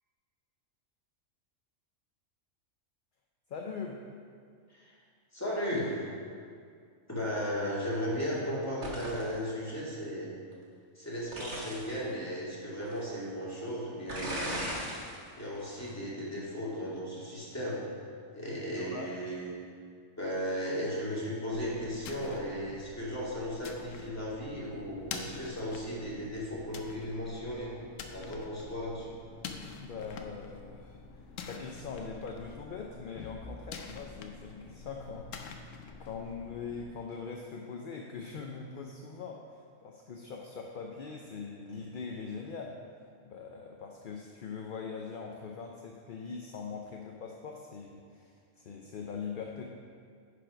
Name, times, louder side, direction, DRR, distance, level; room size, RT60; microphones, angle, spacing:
voice 1, 3.5-4.0 18.7-19.2 29.8-31.0 31.5-35.7 36.0-42.8 43.2-49.7, left 5 dB, 55° left, 1 dB, 0.6 m, -42 dB
voice 2, 5.3-6.0 7.1-10.3 11.0-14.6 15.4-17.8 18.3-19.5 20.2-27.7 28.1-29.1, equal, 10° left, -7 dB, 2.2 m, -35 dB
sound 1, 8.8-9.3 11.3-11.9 12.8-12.9 14.1-15.2 15.6-15.9, right 1 dB, 65° right, 1.9 m, -37 dB
sound 2, 21.5-36.8, left 5 dB, 80° left, 1.1 m, -46 dB
10.5 x 5.0 x 5.0 m, 2.2 s
omnidirectional pair, 1.3 m